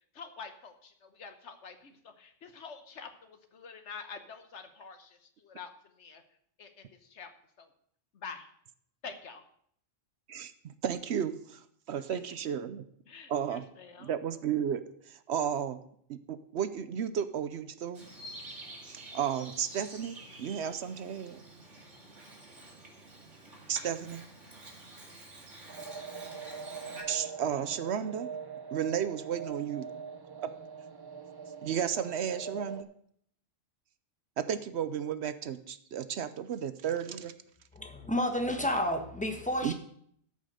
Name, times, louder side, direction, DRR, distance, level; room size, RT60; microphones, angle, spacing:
voice 1, 0.1-5.7 6.0-6.2 6.6-7.3 7.6-7.7 8.1-8.5 9.0-9.4 13.1-14.1, left 5 dB, 70° left, 8 dB, 1.4 m, -47 dB
voice 2, 10.3-12.9 13.3-13.6 14.0-15.8 16.1-18.0 18.8-21.4 23.7-24.2 27.1-28.3 28.7-29.9 30.4-30.5 31.6-32.9 34.4-37.3 39.6-39.7, right 8 dB, 70° right, 13 dB, 0.9 m, -33 dB
Bird vocalization bird call bird song, 17.9-27.0, right 1 dB, 90° right, 2.6 m, -49 dB
sound 1, 25.7-32.8, right 6 dB, 30° right, 0.5 m, -42 dB
voice 3, 37.7-39.7, left 1 dB, 5° left, 5 dB, 1.2 m, -30 dB
13.0 x 5.5 x 6.5 m, 0.66 s
omnidirectional pair, 1.2 m